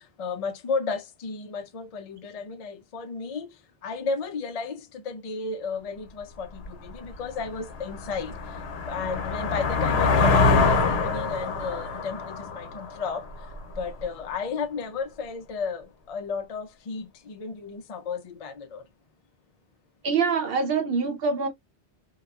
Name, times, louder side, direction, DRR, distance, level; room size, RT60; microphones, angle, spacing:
voice 1, 0.2-3.5 3.8-4.8 5.1-8.3 8.9-13.2 13.8-18.8, left 4 dB, 50° left, 0.4 m, -33 dB
sound 1, 6.6-6.7 7.2-13.8, left 4 dB, 75° left, 1.0 m, -25 dB
voice 2, 20.0-21.5, right 5 dB, 65° right, 0.9 m, -25 dB
2.9 x 2.1 x 2.3 m
omnidirectional pair, 1.1 m